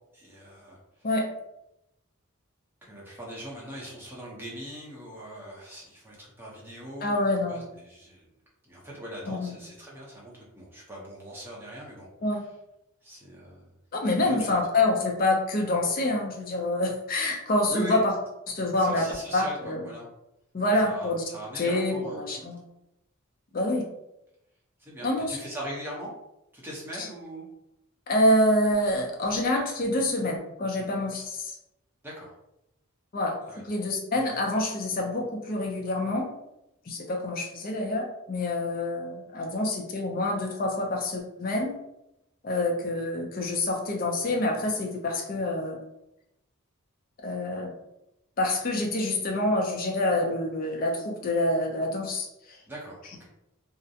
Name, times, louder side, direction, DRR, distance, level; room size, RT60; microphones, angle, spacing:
voice 1, 0.1-1.1 2.8-8.3 8.6-12.1 13.0-13.6 14.2-14.5 17.7-18.0 18.8-20.1 20.8-22.4 24.8-26.1 26.5-27.5 32.0-32.3 33.5-33.6 52.7-53.3, right 1 dB, 10° right, -5 dB, 0.7 m, -41 dB
voice 2, 7.0-7.7 9.3-9.5 12.2-12.4 13.9-18.1 18.5-19.1 19.3-19.8 20.5-21.2 21.6-22.6 23.5-23.9 25.0-25.4 27.0-27.1 28.1-31.6 33.1-36.3 36.9-41.7 42.4-45.8 47.2-47.7 48.4-52.6, left 1 dB, 40° left, 1 dB, 0.5 m, -27 dB
2.4 x 2.1 x 2.7 m, 0.87 s
head